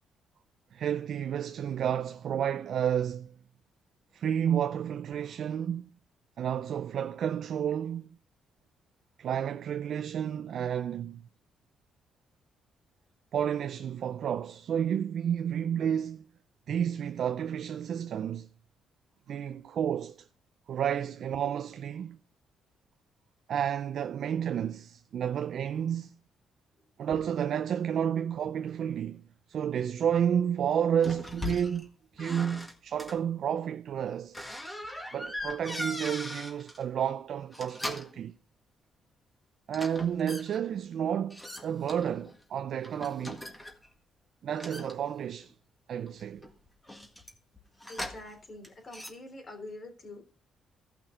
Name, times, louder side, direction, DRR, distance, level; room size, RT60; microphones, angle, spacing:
voice 1, 0.7-3.3 4.1-5.9 6.4-8.1 9.2-11.3 13.3-16.2 16.7-18.5 19.3-20.3 20.7-22.2 23.5-26.2 27.0-34.4 35.1-38.4 39.7-43.4 44.4-45.5 45.9-46.4, right 9 dB, 65° right, 0.4 m, -31 dB
sound 1, 31.0-31.9 32.2-33.2 34.3-36.8 37.4-38.2 39.7-40.6 41.3-42.4 42.8-43.9 44.5-45.5 46.1-48.4 48.6-49.1, left 1 dB, 10° left, 1.7 m, -40 dB
voice 2, 47.9-50.2, left 2 dB, 40° left, 3.4 m, -45 dB
15.5 x 5.7 x 3.7 m
cardioid pair, 90°, 0 cm